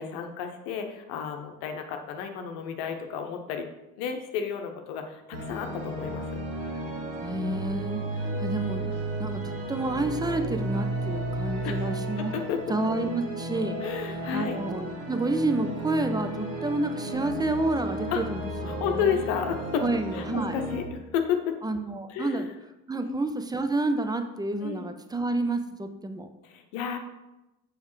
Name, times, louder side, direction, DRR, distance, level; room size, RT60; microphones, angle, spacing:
voice 1, 0.0-3.7 4.0-6.4 8.7-9.0 11.6-11.9 12.2-12.6 13.8-14.6 18.1-18.2 18.6-19.8 20.1-21.5 22.1-22.5 23.0-23.2 24.6-24.9 26.4-27.0, left 8 dB, 65° left, 5 dB, 0.9 m, -32 dB
sound 1, 5.3-20.8, right 1 dB, 60° right, 1.9 m, -33 dB
voice 2, 7.2-12.3 12.7-19.2 19.8-20.5 21.6-22.5 22.9-26.3, right 2 dB, 10° right, 8 dB, 0.5 m, -30 dB
7.2 x 5.1 x 3.1 m, 0.96 s
figure-of-eight pair, 50°, 46 cm